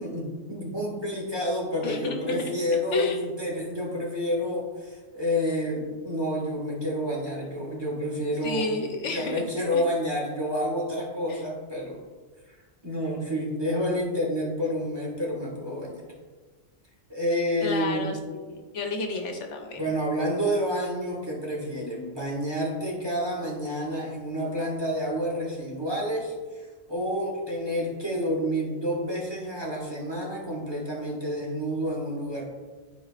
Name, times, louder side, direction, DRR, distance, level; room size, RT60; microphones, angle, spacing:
voice 1, 0.0-8.7 9.1-12.0 12.8-16.0 17.1-18.1 19.8-32.4, equal, 20° right, -4 dB, 1.5 m, -29 dB
voice 2, 1.8-2.5 2.9-3.3 8.4-9.4 9.7-9.8 11.3-11.4 17.6-19.8, left 3 dB, 80° left, 3 dB, 1.2 m, -31 dB
11.0 x 4.4 x 2.4 m, 1.4 s
omnidirectional pair, 1.2 m